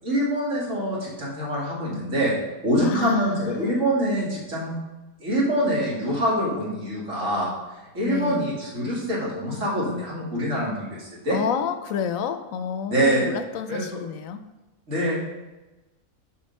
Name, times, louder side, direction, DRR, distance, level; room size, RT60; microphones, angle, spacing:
voice 1, 0.0-2.3 2.6-4.7 5.2-7.5 7.9-11.4 12.9-13.3 13.7-14.0 14.9-15.2, equal, 60° right, -5 dB, 2.6 m, -25 dB
voice 2, 2.8-3.9 8.0-8.4 11.3-14.4, left 7 dB, 75° left, 9 dB, 0.9 m, -30 dB
6.8 x 5.1 x 5.3 m, 1.1 s
omnidirectional pair, 1.5 m